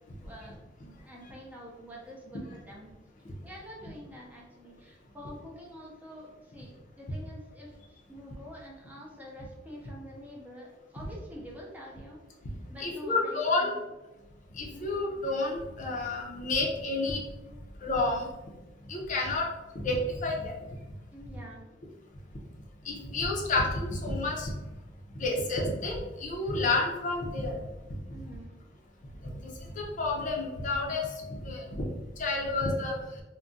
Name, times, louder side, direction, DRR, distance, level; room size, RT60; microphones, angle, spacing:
voice 1, 0.2-2.9 3.4-7.8 8.1-12.2 12.7-13.8 14.7-14.9 21.1-21.6 28.1-28.5, equal, 10° right, -3 dB, 0.5 m, -47 dB
voice 2, 12.8-13.7 14.5-17.2 17.8-18.3 18.9-19.5 19.8-20.5 22.8-24.5 25.2-27.6 29.2-29.3 29.8-31.7 32.2-32.9, left 2 dB, 45° left, -1 dB, 0.5 m, -30 dB
2.3 x 2.1 x 3.8 m, 1.1 s
head